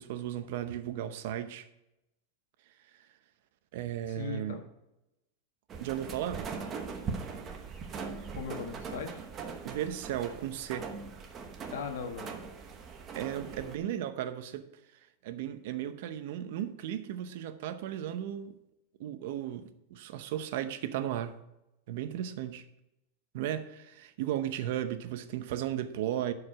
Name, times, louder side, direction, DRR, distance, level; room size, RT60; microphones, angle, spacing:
voice 1, 0.0-1.7 3.7-4.6 5.8-6.5 9.6-10.9 13.1-14.7 15.2-18.5 19.0-21.4 21.9-22.6 23.3-26.3, right 11 dB, 60° right, 0.8 m, -35 dB
voice 2, 4.1-4.6 8.3-9.1 11.7-12.3 13.4-13.5, left 6 dB, 80° left, 1.6 m, -38 dB
sound 1, 5.7-13.8, right 5 dB, 25° right, 1.0 m, -41 dB
11.0 x 4.9 x 5.6 m
supercardioid pair, 155°, 0 cm